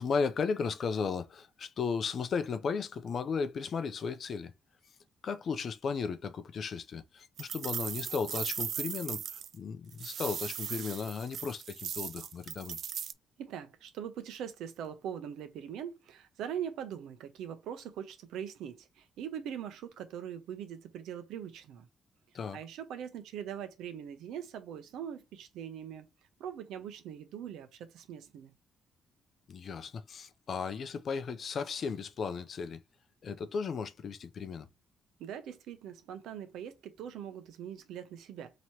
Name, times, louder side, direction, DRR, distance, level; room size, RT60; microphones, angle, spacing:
voice 1, 0.0-4.5 5.2-12.8 22.3-22.6 29.5-32.8 33.2-34.7, left 5 dB, 55° left, 0.5 m, -35 dB
sound 1, 7.4-9.5 9.9-13.1, right 8 dB, 65° right, 0.3 m, -38 dB
voice 2, 13.4-21.9 22.5-26.0 26.4-28.5 35.2-38.6, right 9 dB, 85° right, 0.7 m, -42 dB
3.0 x 2.8 x 4.4 m
cardioid pair, 90°, 0 cm